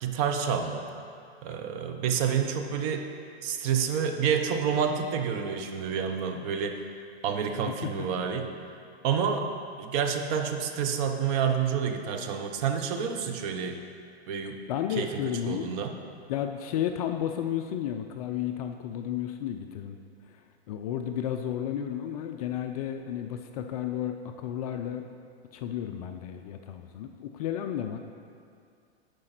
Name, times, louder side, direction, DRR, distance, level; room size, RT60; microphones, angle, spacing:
voice 1, 0.0-0.8 1.4-3.1 3.4-6.9 7.2-8.5 9.0-9.5 9.8-13.8 14.3-14.6 15.0-15.1 15.5-15.9, right 7 dB, 35° right, 5 dB, 0.7 m, -28 dB
voice 2, 14.7-15.7 16.3-20.0 20.2-20.4 20.7-25.1 25.5-28.0, left 10 dB, 35° left, 6 dB, 0.4 m, -32 dB
11.0 x 4.9 x 5.9 m, 2.3 s
hypercardioid pair, 140°, 33 cm